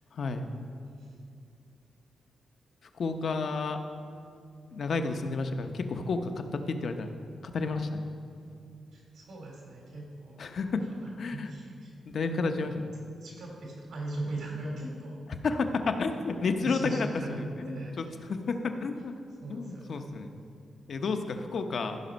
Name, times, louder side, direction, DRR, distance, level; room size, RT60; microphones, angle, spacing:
voice 1, 0.1-0.5 3.0-3.8 4.7-7.1 7.4-8.0 10.4-10.8 11.2-11.5 12.1-12.9 15.4-17.1 17.6-19.1 19.5-20.3 20.9-22.0, left 4 dB, 55° left, 7 dB, 0.7 m, -31 dB
voice 2, 8.9-10.4 10.8-12.0 13.2-15.2 16.6-18.2 19.4-20.2, right 2 dB, 80° right, -1 dB, 2.9 m, -39 dB
14.5 x 6.1 x 5.2 m, 2.4 s
wide cardioid pair, 145°, 0 cm